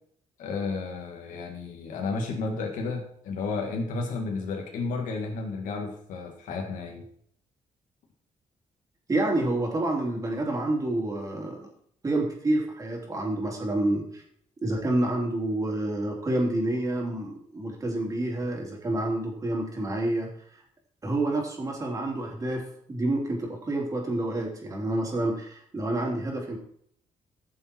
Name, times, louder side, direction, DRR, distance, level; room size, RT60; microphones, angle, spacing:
voice 1, 0.4-7.1, left 3 dB, 90° left, 1 dB, 2.0 m, -32 dB
voice 2, 9.1-11.7 12.0-14.2 14.6-20.3 21.0-26.6, right 1 dB, 25° right, 0 dB, 3.3 m, -28 dB
14.0 x 7.0 x 4.5 m, 0.63 s
cardioid pair, 130°, 13 cm